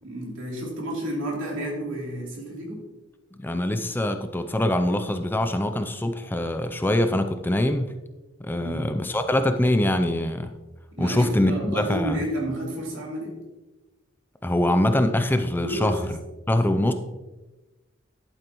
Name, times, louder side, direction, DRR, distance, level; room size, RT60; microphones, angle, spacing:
voice 1, 0.0-2.9 8.6-8.9 11.0-13.4 15.6-16.0, right 1 dB, 65° right, -3 dB, 3.0 m, -31 dB
voice 2, 3.3-7.9 8.4-10.5 11.0-12.3 14.4-16.1 16.5-16.9, left 1 dB, 10° left, 8 dB, 0.4 m, -23 dB
11.0 x 8.8 x 3.0 m, 1.1 s
head